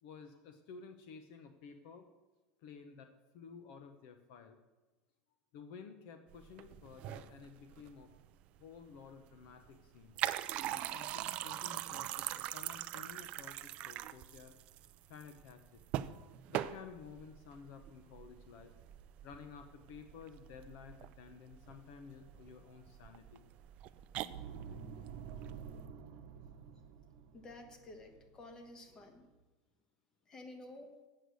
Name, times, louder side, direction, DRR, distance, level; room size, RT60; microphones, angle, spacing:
voice 1, 0.0-2.1 2.6-4.6 5.5-8.1 8.6-10.2 10.7-14.5 15.1-15.8 16.5-18.7 19.2-23.5, left 6 dB, 55° left, 8 dB, 0.8 m, -53 dB
sound 1, 6.3-25.9, right 13 dB, 35° right, 0.3 m, -43 dB
sound 2, 24.3-29.3, right 7 dB, 60° right, 0.9 m, -50 dB
voice 2, 27.3-29.3 30.3-30.9, left 2 dB, 20° left, 5 dB, 1.2 m, -52 dB
7.9 x 6.5 x 8.2 m, 1.1 s
supercardioid pair, 165°, 3 cm